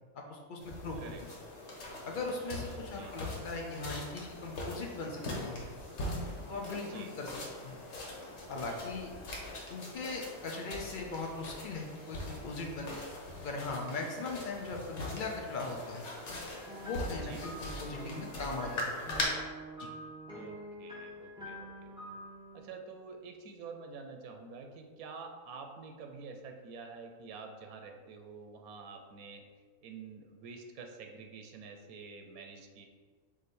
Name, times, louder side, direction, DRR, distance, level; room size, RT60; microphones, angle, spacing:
voice 1, 0.1-1.0 2.0-5.6 6.5-7.8 8.5-9.1 9.7-13.0 13.4-16.0 16.8-18.9 19.8-19.9, left 3 dB, 75° left, 0 dB, 0.4 m, -39 dB
sound 1, 0.6-19.2, left 2 dB, 55° left, 1.1 m, -42 dB
voice 2, 2.8-3.2 6.9-7.1 17.2-17.4 20.3-22.2 22.5-29.4 29.8-32.9, right 4 dB, 90° right, 4 dB, 1.0 m, -48 dB
sound 2, 16.4-22.7, equal, 5° right, 1.2 m, -46 dB
4.8 x 2.7 x 4.1 m, 1.5 s
omnidirectional pair, 1.5 m